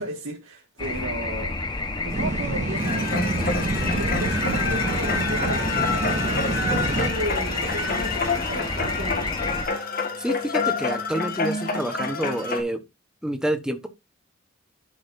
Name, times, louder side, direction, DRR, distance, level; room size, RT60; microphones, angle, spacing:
voice 1, 0.0-9.3, right 1 dB, 80° right, 1.9 m, -35 dB
sound 1, 0.8-9.7, left 2 dB, 20° left, 1.1 m, -30 dB
sound 2, 2.1-7.1, right 2 dB, 35° right, 0.5 m, -28 dB
sound 3, 2.8-12.6, left 3 dB, 40° left, 1.7 m, -27 dB
voice 2, 10.2-12.8 13.2-13.9, right 1 dB, 5° right, 1.1 m, -28 dB
11.5 x 6.3 x 2.6 m
head